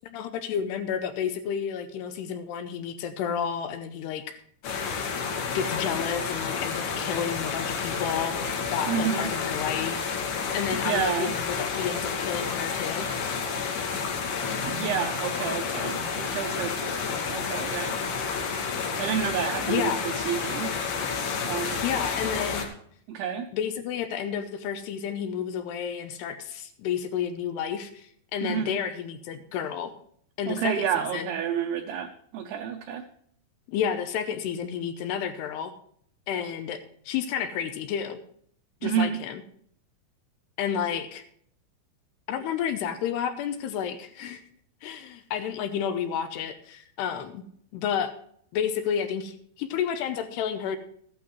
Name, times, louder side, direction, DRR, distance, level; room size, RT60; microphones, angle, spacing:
voice 1, 0.0-4.4 5.5-8.4 8.7-10.1 10.5-13.1 19.6-20.1 21.8-22.7 23.5-29.9 30.4-31.3 33.7-35.7 36.3-36.8 37.1-38.2 38.8-39.4 40.6-41.2 42.3-44.4 44.8-47.4 47.7-48.1 48.5-50.8, left 8 dB, 80° left, 9 dB, 2.5 m, -31 dB
sound 1, 4.6-22.7, left 5 dB, 60° left, 3.5 m, -30 dB
voice 2, 8.9-9.3 10.8-11.3 14.7-18.0 19.0-20.7 21.4-21.8 23.1-23.5 28.4-28.8 30.5-33.0 38.8-39.2, right 8 dB, 80° right, 4 dB, 2.4 m, -30 dB
15.0 x 12.0 x 3.1 m, 0.63 s
omnidirectional pair, 5.4 m